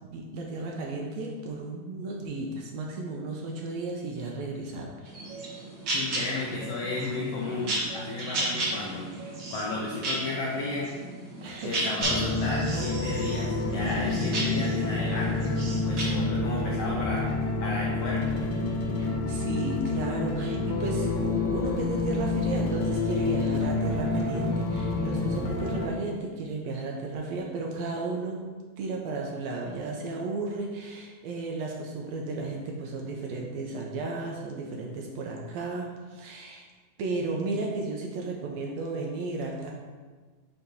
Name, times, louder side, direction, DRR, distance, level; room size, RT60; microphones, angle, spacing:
voice 1, 0.0-4.9 11.4-11.9 19.0-28.4 28.8-36.6 37.0-39.7, right 3 dB, 80° right, 0 dB, 1.6 m, -34 dB
sound 1, 5.0-16.0, right 1 dB, 50° right, 1.4 m, -34 dB
voice 2, 5.9-9.1 9.5-10.9 11.6-15.5 15.8-17.3 17.6-18.3, left 3 dB, 85° left, -4 dB, 1.4 m, -33 dB
sound 2, 12.0-25.9, left 3 dB, 65° left, 1.8 m, -28 dB
6.6 x 2.9 x 5.3 m, 1.4 s
omnidirectional pair, 3.7 m